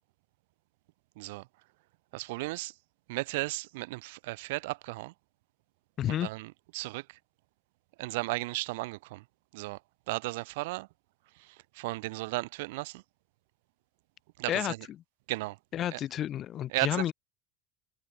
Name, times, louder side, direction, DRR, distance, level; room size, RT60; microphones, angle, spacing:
voice 1, 1.2-1.5 2.1-2.7 3.1-5.1 6.1-7.2 8.0-9.2 9.5-9.8 10.1-10.9 11.4-13.0 14.4-14.8 15.3-15.6 15.9-16.0 16.7-17.1, right 22 dB, 75° right, 1.5 m, -35 dB
voice 2, 6.0-6.3 14.5-14.7 15.7-17.1, left 11 dB, 30° left, 3.8 m, -30 dB
cardioid pair, 180°, 0 cm